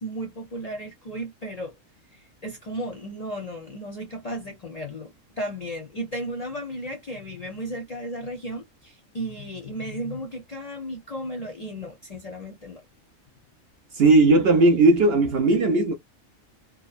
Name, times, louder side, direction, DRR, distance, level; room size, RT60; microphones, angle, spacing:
voice 1, 0.0-1.7 2.1-12.8, equal, 45° left, 0.5 m, -34 dB
voice 2, 14.0-15.9, right 2 dB, 60° right, 0.7 m, -17 dB
2.6 x 2.2 x 2.4 m
omnidirectional pair, 1.4 m